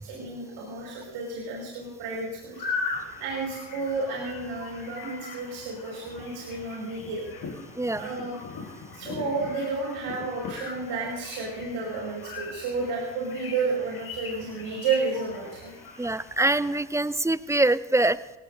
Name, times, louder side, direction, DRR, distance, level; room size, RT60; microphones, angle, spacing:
voice 1, 0.0-2.6 3.2-7.2 7.9-8.4 8.9-16.1, right 4 dB, 60° right, -2 dB, 6.2 m, -31 dB
sound 1, 2.5-16.8, left 4 dB, 50° left, 5.9 m, -39 dB
voice 2, 7.8-8.1 16.0-18.4, right 2 dB, 5° right, 18 dB, 0.5 m, -24 dB
27.0 x 17.0 x 2.8 m, 1.0 s
figure-of-eight pair, 50°, 50 cm